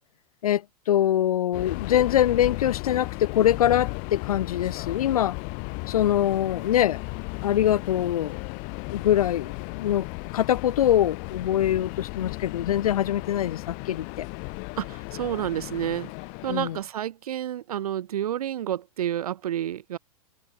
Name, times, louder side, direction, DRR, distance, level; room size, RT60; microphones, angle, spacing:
voice 1, 0.4-5.4 5.9-7.0 7.4-8.4 8.9-10.1 10.3-14.3 16.5-16.8, left 11 dB, 75° left, 1.3 m, -23 dB
Subway metro underground, 1.5-16.9, left 37 dB, 45° left, 1.3 m, -35 dB
voice 2, 14.8-16.1 16.4-20.0, right 11 dB, 85° right, 0.5 m, -30 dB
hypercardioid pair, 120°, 19 cm